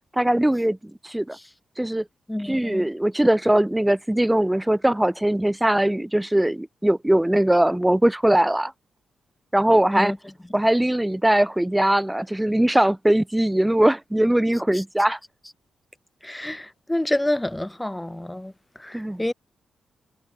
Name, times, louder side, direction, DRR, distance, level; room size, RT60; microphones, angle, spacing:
voice 1, 0.1-0.8 1.0-1.4 1.8-2.0 2.4-8.7 9.5-10.1 10.5-15.2 18.9-19.2, right 1 dB, 10° right, 1.5 m, -20 dB
voice 2, 2.3-2.9 9.9-10.2 14.7-14.8 16.2-18.5 18.8-19.3, left 1 dB, 10° left, 1.3 m, -28 dB
supercardioid pair, 50°, 0 cm